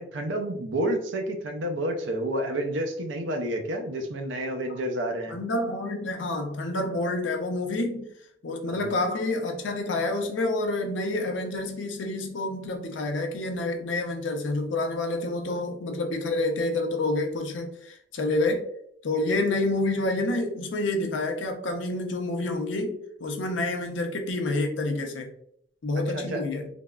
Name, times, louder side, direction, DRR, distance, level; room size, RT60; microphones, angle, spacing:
voice 1, 0.0-5.3 8.7-8.9 26.1-26.4, right 1 dB, 80° right, 5 dB, 0.5 m, -30 dB
voice 2, 5.3-8.1 8.4-18.6 19.0-25.3 25.8-26.7, left 2 dB, 75° left, 4 dB, 0.5 m, -28 dB
3.4 x 2.0 x 2.2 m, 0.71 s
head